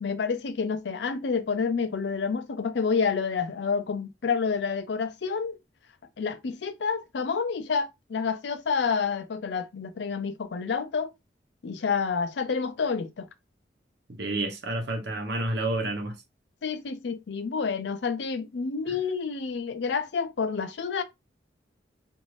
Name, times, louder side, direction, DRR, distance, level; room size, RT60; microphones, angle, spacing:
voice 1, 0.0-5.6 6.2-11.1 11.6-13.3 16.6-21.0, left 5 dB, 80° left, 0.5 m, -29 dB
voice 2, 14.2-16.2 18.9-19.0, right 2 dB, 75° right, 0.9 m, -29 dB
2.6 x 2.5 x 3.1 m
head